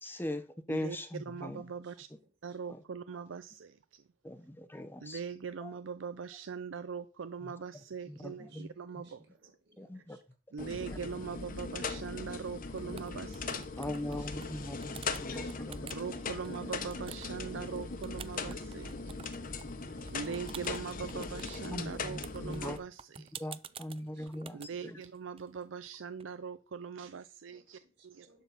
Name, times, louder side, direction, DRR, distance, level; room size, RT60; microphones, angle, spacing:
voice 1, 0.0-1.6 2.7-2.8 4.2-5.2 5.6-5.7 7.4-7.5 8.1-8.7 9.8-10.2 13.8-15.9 21.7-22.8 23.4-25.0, left 1 dB, 10° left, 0.7 m, -40 dB
voice 2, 0.7-2.1 2.4-4.0 5.0-9.2 9.9-10.0 10.5-13.7 15.9-19.2 19.5-19.6 20.1-23.3 24.5-28.3, right 6 dB, 80° right, 0.5 m, -42 dB
voice 3, 7.7-9.1 9.4-10.2 13.8-14.5 15.3-16.1 23.7-24.9 27.5-28.4, right 3 dB, 60° right, 5.0 m, -65 dB
sound 1, 10.6-22.8, left 4 dB, 45° left, 1.0 m, -39 dB
sound 2, 12.3-12.5 12.8-14.5 14.8-16.0 16.4-26.2, right 8 dB, 30° right, 0.4 m, -50 dB
11.5 x 4.0 x 7.0 m
head